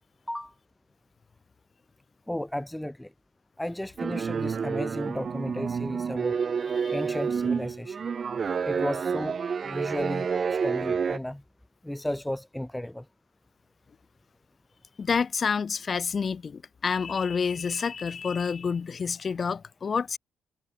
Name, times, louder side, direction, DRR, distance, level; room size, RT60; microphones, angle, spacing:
voice 1, 2.3-3.1 3.6-6.4 6.9-8.0 8.6-11.4 11.8-13.1, left 1 dB, 5° left, 3.3 m, -34 dB
sound 1, 4.0-11.2, right 6 dB, 45° right, 0.8 m, -29 dB
voice 2, 15.0-20.2, left 5 dB, 40° left, 1.5 m, -28 dB
cardioid pair, 90°, 0 cm